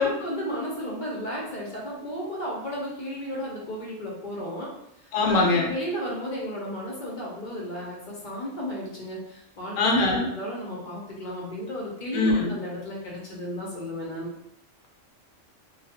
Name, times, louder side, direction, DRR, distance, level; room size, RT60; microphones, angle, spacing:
voice 1, 0.0-4.7 5.2-9.9 10.3-14.3, equal, 45° left, -3 dB, 0.7 m, -33 dB
voice 2, 5.1-5.7 9.8-10.3 12.1-12.5, left 3 dB, 90° left, 0 dB, 1.0 m, -22 dB
2.3 x 2.2 x 2.7 m, 0.79 s
omnidirectional pair, 1.3 m